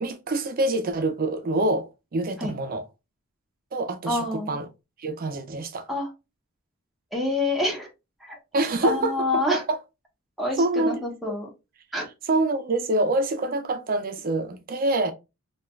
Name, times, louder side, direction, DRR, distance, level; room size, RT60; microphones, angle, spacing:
voice 1, 0.0-2.8 3.7-4.7 5.0-5.9 8.5-9.8 10.6-11.0 11.2-11.3 12.3-15.1, right 2 dB, 45° right, 0.4 m, -26 dB
voice 2, 4.1-4.5 5.9-6.1 7.1-7.9 8.2-9.6 10.4-11.5 11.9-12.1, left 2 dB, ahead, 0.6 m, -27 dB
3.1 x 2.3 x 2.3 m
head